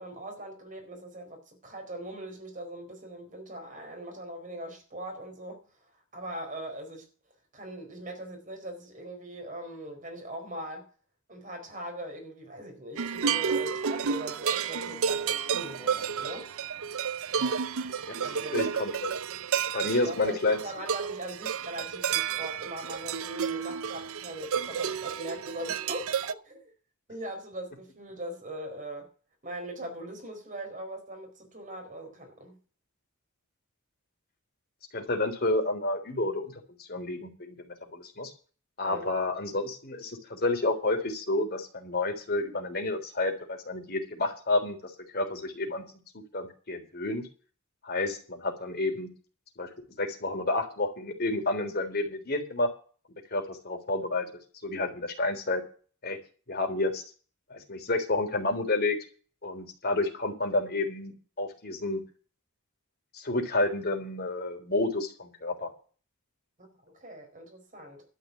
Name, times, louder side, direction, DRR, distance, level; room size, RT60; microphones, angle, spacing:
voice 1, 0.0-5.6 6.1-7.1 7.5-10.9 11.3-16.5 17.4-17.7 18.2-18.6 19.8-26.7 27.1-29.1 29.4-32.6 38.8-39.1 66.6-68.1, right 1 dB, 35° right, 4.4 m, -41 dB
sound 1, 13.0-26.3, right 7 dB, 70° right, 0.5 m, -31 dB
voice 2, 18.1-19.1 19.7-20.6 34.9-36.5 36.8-38.3 38.8-45.8 46.1-47.2 47.8-49.1 49.6-49.7 50.0-52.7 53.3-54.3 54.6-55.6 56.0-56.2 56.5-57.0 57.5-59.0 59.4-62.0 63.1-65.7, left 2 dB, 45° left, 3.4 m, -30 dB
12.5 x 5.7 x 9.4 m
head